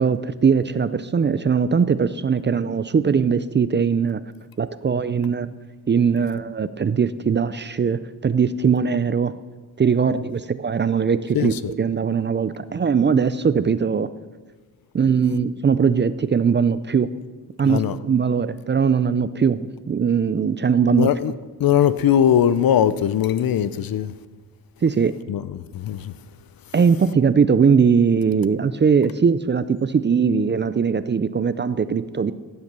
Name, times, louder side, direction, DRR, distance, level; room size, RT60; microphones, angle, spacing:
voice 1, 0.0-4.2 4.6-5.6 5.9-9.3 9.8-14.1 14.9-17.1 17.6-21.1 24.8-25.1 26.7-32.3, right 6 dB, 30° right, 0.4 m, -20 dB
voice 2, 17.6-18.0 21.0-21.3 21.6-24.1 25.3-26.1, left 9 dB, 65° left, 0.7 m, -20 dB
16.0 x 8.0 x 6.7 m
wide cardioid pair, 115°, 39 cm